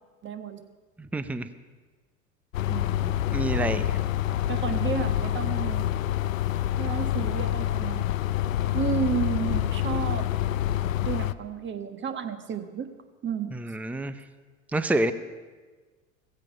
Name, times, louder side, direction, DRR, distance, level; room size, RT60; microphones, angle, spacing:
voice 1, 0.2-0.6 2.7-3.4 4.5-5.9 6.8-8.0 8.7-10.3 11.0-12.9 13.2-13.5, right 7 dB, 30° right, 8 dB, 1.4 m, -32 dB
voice 2, 1.0-1.5 3.3-4.0 13.5-14.1 14.7-15.1, right 2 dB, 5° right, 11 dB, 0.7 m, -27 dB
sound 1, 2.5-11.3, left 12 dB, 85° left, 0.6 m, -27 dB
16.5 x 15.5 x 5.2 m, 1.4 s
hypercardioid pair, 85°, 39 cm